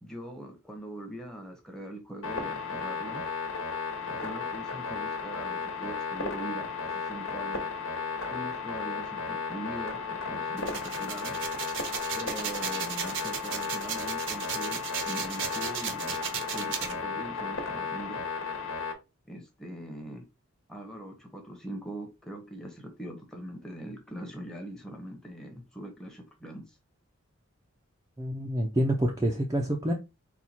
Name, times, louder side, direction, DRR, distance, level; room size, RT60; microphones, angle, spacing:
voice 1, 0.0-3.2 4.1-7.7 8.3-11.4 12.2-18.2 19.3-20.2 20.7-26.6, right 1 dB, 5° left, 0.9 m, -42 dB
sound 1, 2.2-18.9, left 5 dB, 75° left, 1.3 m, -34 dB
sound 2, 10.6-16.9, right 7 dB, 55° right, 0.7 m, -35 dB
voice 2, 28.2-29.9, right 1 dB, 15° right, 0.5 m, -27 dB
4.2 x 2.3 x 4.3 m
head